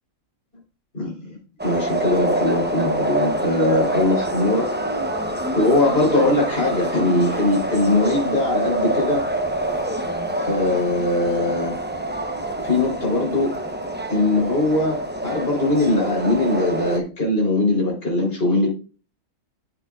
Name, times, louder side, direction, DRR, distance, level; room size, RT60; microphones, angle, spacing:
voice 1, 0.9-1.3 1.6-4.7 5.5-9.2 10.4-11.7 12.6-13.5 14.1-18.7, left 2 dB, 45° left, -3 dB, 3.8 m, -21 dB
sound 1, 1.6-17.0, right 1 dB, 10° right, 0.6 m, -26 dB
11.5 x 7.0 x 2.4 m, 0.35 s
omnidirectional pair, 1.4 m